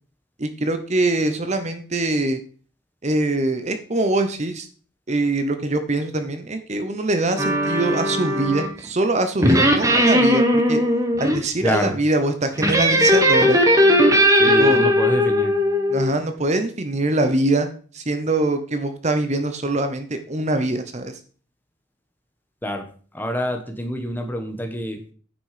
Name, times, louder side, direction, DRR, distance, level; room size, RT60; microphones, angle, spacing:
voice 1, 0.4-2.4 3.0-4.7 5.1-10.8 11.2-13.6 14.6-14.8 15.9-17.7 17.9-21.1, right 2 dB, 35° right, 9 dB, 0.9 m, -23 dB
sound 1, 7.4-8.8 9.4-11.4 12.6-16.1, equal, 15° right, 1.3 m, -18 dB
voice 2, 11.6-11.9 14.4-15.5 22.6-22.8 23.1-25.0, equal, 10° left, 5 dB, 1.2 m, -26 dB
9.5 x 6.1 x 5.0 m, 0.42 s
head